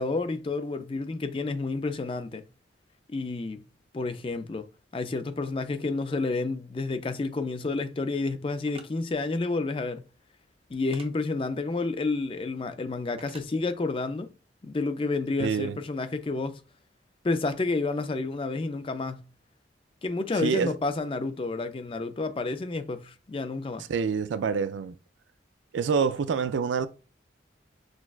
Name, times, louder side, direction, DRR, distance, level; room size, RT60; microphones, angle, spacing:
voice 1, 0.0-2.5 3.1-3.7 3.9-10.0 10.7-14.3 14.6-16.6 17.2-19.3 20.0-23.9, left 3 dB, 30° left, 0.3 m, -30 dB
sound 1, 8.7-8.9 10.9-11.1 13.2-13.5, right 4 dB, 30° right, 0.6 m, -47 dB
voice 2, 15.4-15.8 20.4-20.7 23.9-25.0 25.7-26.9, right 6 dB, 80° right, 0.4 m, -26 dB
6.1 x 2.3 x 2.3 m
head